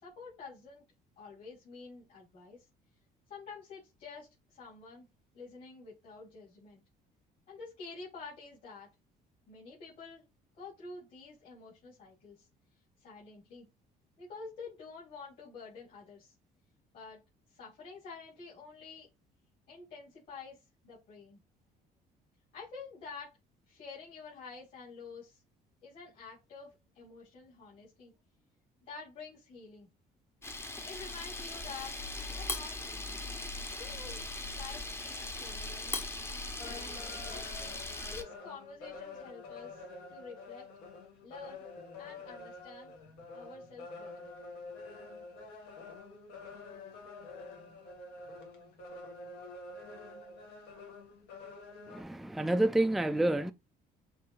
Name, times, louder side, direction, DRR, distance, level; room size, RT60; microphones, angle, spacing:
voice 1, 0.0-0.8 1.2-2.7 3.3-5.0 5.3-6.8 7.5-8.9 9.5-10.2 10.5-12.5 13.0-13.7 14.2-16.3 16.9-17.2 17.5-19.1 19.7-21.4 22.5-23.4 23.7-25.4 25.8-28.1 28.9-29.9 30.8-32.0 32.3-33.2 33.7-36.0 36.6-39.8 40.1-40.7 41.2-41.6 42.0-42.9 43.3-44.3, left 4 dB, 55° left, 3.3 m, -49 dB
Camera, 30.4-38.2, left 2 dB, 15° left, 0.8 m, -39 dB
sound 1, 36.6-52.0, left 3 dB, 80° left, 1.7 m, -48 dB
voice 2, 51.9-53.5, right 1 dB, ahead, 0.4 m, -28 dB
6.7 x 2.7 x 2.8 m
cardioid pair, 110°, 17 cm